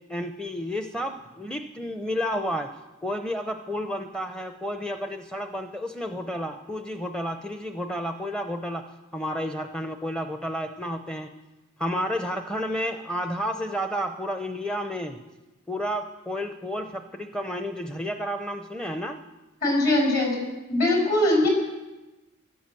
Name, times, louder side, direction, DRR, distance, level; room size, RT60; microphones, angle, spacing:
voice 1, 0.1-2.7 3.0-8.8 9.1-11.3 11.8-15.2 15.7-19.2, equal, 5° left, 5 dB, 0.6 m, -31 dB
voice 2, 19.6-20.4 20.7-21.5, left 1 dB, 50° left, -1 dB, 6.3 m, -21 dB
16.0 x 12.0 x 7.6 m, 1.1 s
head